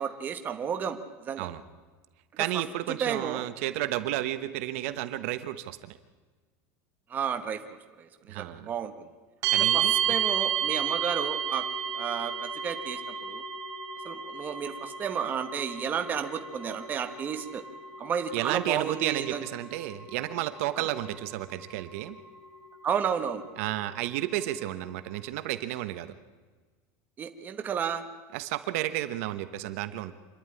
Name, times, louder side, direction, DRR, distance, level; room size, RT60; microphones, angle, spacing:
voice 1, 0.0-1.5 2.5-2.6 3.0-3.4 7.1-7.6 8.0-8.1 8.3-9.1 9.7-11.6 11.9-13.0 13.3-13.4 14.0-17.6 18.0-19.4 20.8-20.9 22.8-23.4 27.2-28.0, right 7 dB, 20° right, 6 dB, 1.2 m, -32 dB
voice 2, 2.4-6.0 8.3-8.7 9.5-10.2 18.3-22.2 23.6-26.1 28.3-30.1, right 14 dB, 65° right, 11 dB, 1.1 m, -32 dB
sound 1, 9.4-25.1, right 8 dB, 40° right, 3.8 m, -33 dB
26.5 x 11.0 x 9.8 m, 1.4 s
supercardioid pair, 165°, 8 cm